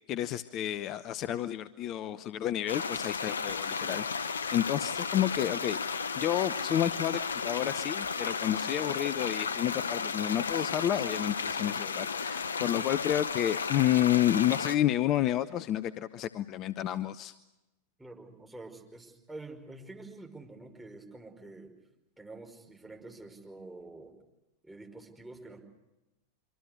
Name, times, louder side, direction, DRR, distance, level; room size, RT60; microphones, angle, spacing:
voice 1, 0.1-5.8 6.2-17.4, left 12 dB, 35° left, 16 dB, 0.8 m, -30 dB
sound 1, 2.7-14.8, left 5 dB, 70° left, 0.8 m, -33 dB
voice 2, 18.0-21.7 22.2-24.1 24.6-25.7, right 2 dB, 5° right, 2 dB, 5.5 m, -47 dB
25.5 x 25.0 x 6.6 m, 0.96 s
figure-of-eight pair, 90°, 0 cm